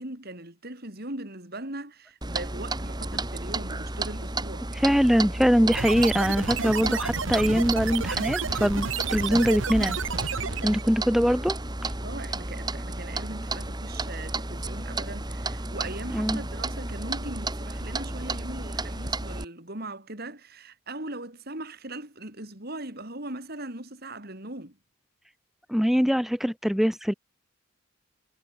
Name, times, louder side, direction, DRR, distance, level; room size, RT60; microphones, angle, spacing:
voice 1, 0.0-4.7 12.0-24.8, right 2 dB, 50° right, 4.5 m, -39 dB
Clock, 2.2-19.4, right 2 dB, 20° right, 2.6 m, -32 dB
voice 2, 4.8-10.0 10.6-11.6 16.1-16.4 25.7-27.1, equal, ahead, 1.6 m, -23 dB
sound 1, 5.7-10.9, right 5 dB, 70° right, 1.4 m, -31 dB
head